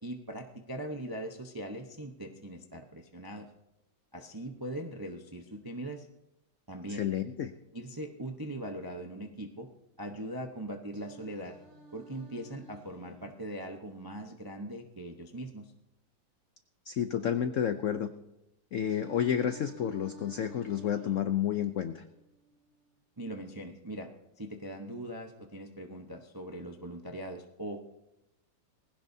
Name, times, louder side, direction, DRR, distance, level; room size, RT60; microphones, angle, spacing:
voice 1, 0.0-3.5 4.1-6.1 6.7-7.0 7.7-9.7 10.0-11.6 11.9-15.7 23.2-24.1 24.4-27.9, right 1 dB, 35° right, 3 dB, 0.3 m, -40 dB
voice 2, 6.9-7.5 16.9-18.1 18.7-22.0, left 9 dB, 75° left, 9 dB, 0.7 m, -30 dB
Singing, 10.9-14.9 18.9-22.9, right 3 dB, 50° right, 3.4 m, -54 dB
20.0 x 16.5 x 2.7 m, 0.92 s
omnidirectional pair, 2.0 m